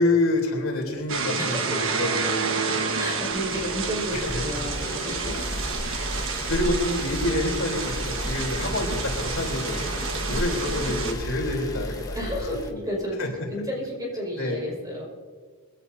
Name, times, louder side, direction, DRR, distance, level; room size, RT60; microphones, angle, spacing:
voice 1, 0.0-2.6 3.5-3.7 4.1-4.4 6.5-9.9 10.3-12.4 13.2-13.3 14.4-14.6, left 2 dB, 60° left, 0 dB, 3.5 m, -27 dB
sound 1, 1.1-11.1, right 4 dB, 60° right, 1.4 m, -30 dB
voice 2, 1.4-2.3 2.6-5.4 6.1-6.3 10.1-10.3 12.1-15.0, equal, 15° right, -2 dB, 5.2 m, -33 dB
sound 2, 3.3-12.7, left 1 dB, 15° left, 1.1 m, -33 dB
22.0 x 16.5 x 2.7 m, 1.5 s
head